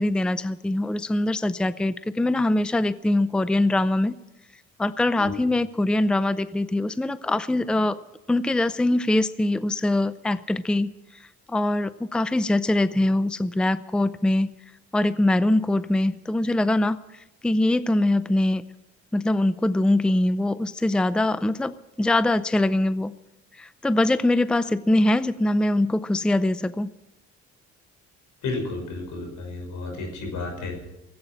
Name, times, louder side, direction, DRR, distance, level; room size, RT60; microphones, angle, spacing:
voice 1, 0.0-4.1 4.8-8.0 8.3-10.9 11.5-14.5 14.9-17.0 17.4-18.6 19.1-23.1 23.6-26.9, left 1 dB, 5° left, 15 dB, 0.5 m, -23 dB
voice 2, 28.4-30.9, left 3 dB, 85° left, 3 dB, 6.1 m, -32 dB
17.0 x 8.7 x 9.8 m, 0.96 s
cardioid pair, 90°, 30 cm